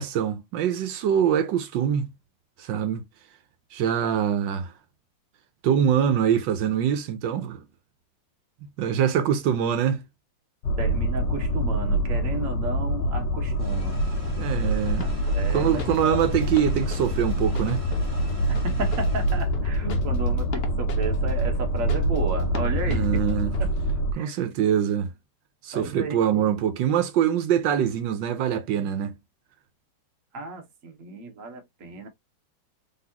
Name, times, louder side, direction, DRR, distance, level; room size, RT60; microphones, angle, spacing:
voice 1, 0.0-2.1 2.6-3.0 3.7-4.7 5.6-7.6 8.8-10.0 14.4-15.1 15.5-17.8 22.9-23.5 24.1-25.1 25.6-29.1, right 9 dB, 80° right, 1.4 m, -24 dB
sound 1, 10.6-24.1, right 1 dB, 80° left, 1.3 m, -25 dB
voice 2, 10.8-14.0 15.0-16.3 18.5-23.2 23.6-23.7 24.1-24.3 25.7-26.2 30.3-32.1, right 3 dB, 50° right, 1.3 m, -33 dB
sound 2, 13.6-19.4, right 2 dB, 20° right, 1.7 m, -45 dB
sound 3, 14.8-23.9, left 4 dB, 50° left, 0.8 m, -41 dB
4.0 x 3.6 x 2.8 m
omnidirectional pair, 2.0 m